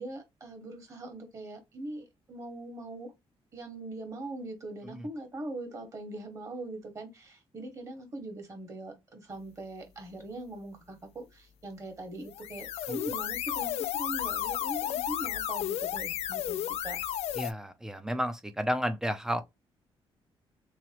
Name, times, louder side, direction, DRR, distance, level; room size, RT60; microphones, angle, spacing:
voice 1, 0.0-3.1 3.5-17.0, right 2 dB, 30° right, 1.6 m, -41 dB
sound 1, 12.3-17.5, left 11 dB, 85° left, 0.5 m, -33 dB
voice 2, 17.4-19.4, equal, 5° right, 0.6 m, -32 dB
3.8 x 3.1 x 3.0 m
cardioid pair, 160°, 10 cm